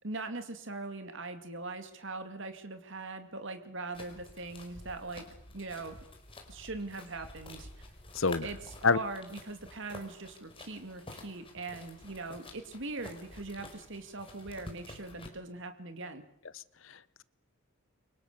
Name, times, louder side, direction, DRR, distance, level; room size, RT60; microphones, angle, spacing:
voice 1, 0.0-5.2 5.5-6.0 6.5-7.9 8.4-8.6 8.9-16.2, right 3 dB, 60° right, 7 dB, 2.6 m, -41 dB
sound 1, 3.9-15.3, left 2 dB, 25° left, 5.0 m, -50 dB
voice 2, 8.1-8.5 8.8-9.0 16.5-17.2, left 4 dB, 60° left, 17 dB, 1.1 m, -28 dB
29.5 x 25.0 x 7.0 m, 0.72 s
head